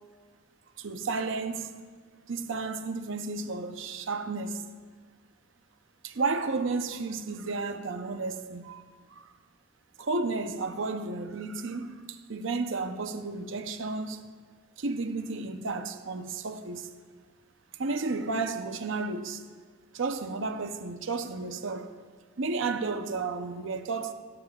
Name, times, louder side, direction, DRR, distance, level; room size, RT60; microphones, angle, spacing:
voice 1, 0.8-1.8 2.3-4.6 6.0-9.3 10.0-14.2 14.8-16.9 17.8-19.4 19.9-21.9 22.4-24.1, right 3 dB, 70° right, 0.7 m, -32 dB
17.0 x 12.5 x 2.4 m
head